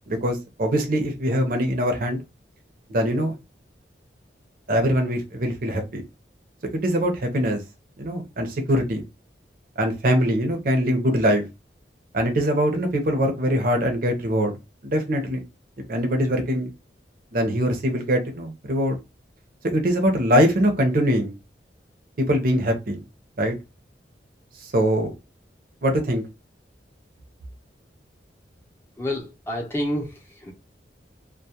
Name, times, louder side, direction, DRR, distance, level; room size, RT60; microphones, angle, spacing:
voice 1, 0.1-2.2 2.9-3.3 4.7-6.0 6.7-7.6 8.0-9.0 9.8-11.4 12.1-14.5 14.8-15.4 15.9-16.7 17.3-19.0 19.7-21.3 22.2-23.0 23.4-23.5 24.6-25.1 25.8-26.2, equal, 55° right, 0.6 m, -22 dB
voice 2, 29.0-30.1 30.4-30.5, left 1 dB, 15° left, 0.5 m, -28 dB
2.2 x 2.1 x 2.7 m
head